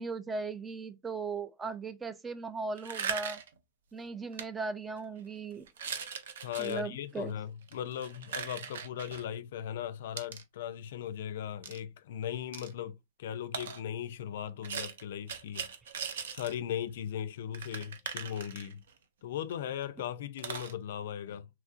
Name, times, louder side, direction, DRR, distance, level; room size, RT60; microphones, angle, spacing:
voice 1, 0.0-3.4 3.9-5.7 6.6-7.3, right 4 dB, 15° right, 0.3 m, -37 dB
sound 1, 2.8-3.6 4.3-4.4 5.0-5.2 5.7-6.8 7.6-9.2 10.2-10.4 11.6-11.8 12.5-12.7 13.5-13.8 14.6-16.6 16.9-17.0 17.2-17.3 17.5-19.0 19.5-19.6 19.8-19.9 20.4-20.7, right 7 dB, 75° right, 0.5 m, -39 dB
voice 2, 6.4-15.7 16.3-18.8 19.2-21.5, left 10 dB, 70° left, 0.3 m, -38 dB
3.0 x 2.4 x 2.4 m
hypercardioid pair, 120°, 0 cm